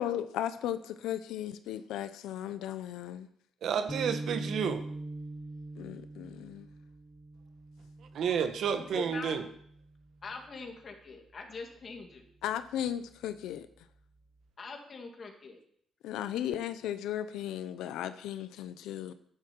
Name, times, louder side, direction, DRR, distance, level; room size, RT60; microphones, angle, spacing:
voice 1, 0.0-3.3 5.8-6.7 12.4-13.7 16.0-19.1, left 11 dB, 90° left, 0.7 m, -36 dB
voice 2, 3.6-4.8 8.1-9.4, right 7 dB, 70° right, 1.5 m, -30 dB
sound 1, 3.9-10.3, right 2 dB, 5° right, 2.4 m, -43 dB
voice 3, 8.7-9.3 10.2-12.3 14.6-15.6, left 4 dB, 45° left, 2.6 m, -43 dB
11.0 x 11.0 x 4.6 m
cardioid pair, 90°, 0 cm